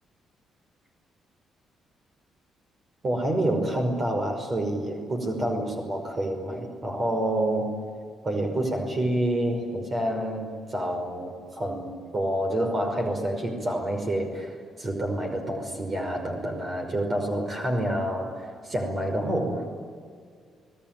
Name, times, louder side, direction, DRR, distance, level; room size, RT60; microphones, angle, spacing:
voice 1, 3.0-7.8 8.2-19.7, right 1 dB, 35° right, 3 dB, 5.5 m, -28 dB
28.5 x 19.5 x 9.3 m, 2.1 s
cardioid pair, 90°, 0 cm